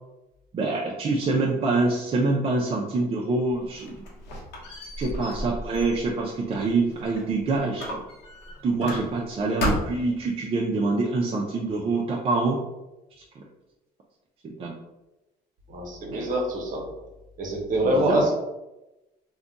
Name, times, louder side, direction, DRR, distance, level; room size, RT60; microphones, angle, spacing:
voice 1, 0.5-4.0 5.0-7.9 8.6-12.6 13.4-13.5 14.4-14.7 16.1-16.3 17.9-18.3, right 3 dB, 35° right, -2 dB, 0.4 m, -25 dB
Squeak, 3.5-7.3 7.8-9.3 9.6-10.2, left 1 dB, 80° left, 0.8 m, -33 dB
voice 2, 15.7-16.9 17.4-18.3, right 1 dB, 50° right, 0 dB, 0.9 m, -25 dB
2.4 x 2.2 x 3.8 m, 0.98 s
cardioid pair, 110°, 17 cm